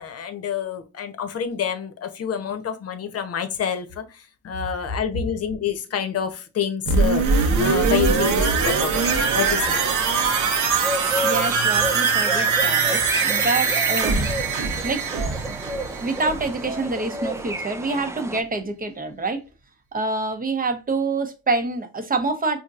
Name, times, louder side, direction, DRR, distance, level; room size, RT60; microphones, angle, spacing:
voice 1, 0.0-9.0 9.3-9.7, left 8 dB, 55° left, 8 dB, 0.8 m, -28 dB
sound 1, 6.9-16.6 16.9-17.0, right 5 dB, 85° right, 0.9 m, -22 dB
sound 2, 9.0-18.4, right 1 dB, 10° right, 0.3 m, -31 dB
voice 2, 11.2-14.3 14.8-15.0 15.5-15.6 16.0-19.4 19.9-22.6, right 3 dB, 30° right, 8 dB, 0.8 m, -26 dB
4.3 x 2.6 x 2.4 m, 0.30 s
cardioid pair, 90°, 30 cm